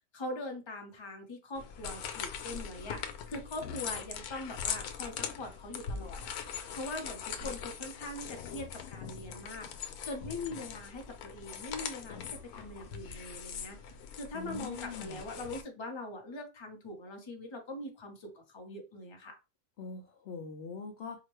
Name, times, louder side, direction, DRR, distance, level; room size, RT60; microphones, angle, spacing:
voice 1, 0.1-3.0 3.3-6.3 6.7-9.7 10.0-13.8 14.1-19.4, left 2 dB, 25° left, 0.7 m, -42 dB
sound 1, 1.5-15.6, left 7 dB, 90° left, 1.1 m, -41 dB
voice 2, 14.3-15.2 19.8-21.2, left 4 dB, 60° left, 0.7 m, -42 dB
4.7 x 2.1 x 3.0 m
omnidirectional pair, 1.5 m